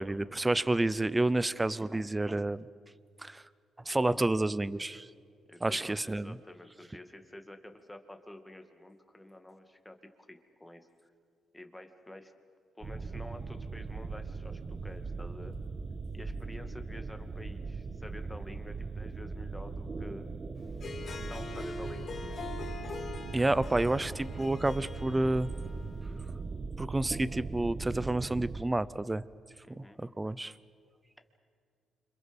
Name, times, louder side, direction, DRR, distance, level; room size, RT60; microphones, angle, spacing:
voice 1, 0.0-2.6 3.2-3.4 3.9-5.1 5.6-6.4 23.3-25.5 26.8-29.2 29.8-30.5, right 2 dB, 15° right, 18 dB, 0.7 m, -29 dB
voice 2, 5.5-10.0 10.3-10.9 11.5-12.3 12.8-15.6 16.1-20.3 21.1-22.5 29.6-30.0, left 1 dB, 10° left, 6 dB, 2.3 m, -49 dB
sound 1, 12.8-28.6, right 4 dB, 35° right, 1.2 m, -39 dB
Harp, 20.7-26.1, left 3 dB, 45° left, 2.8 m, -43 dB
29.5 x 27.0 x 5.4 m, 2.2 s
cardioid pair, 90°, 0 cm